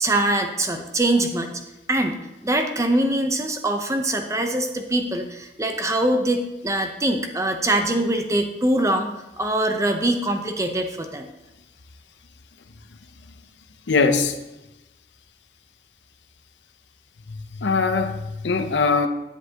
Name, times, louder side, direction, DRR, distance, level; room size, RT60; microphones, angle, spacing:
voice 1, 0.0-1.6 1.9-11.3, right 1 dB, 15° right, 5 dB, 0.8 m, -23 dB
voice 2, 13.9-14.4 17.3-19.1, left 4 dB, 80° left, 8 dB, 0.7 m, -21 dB
10.0 x 8.1 x 2.9 m, 0.98 s
head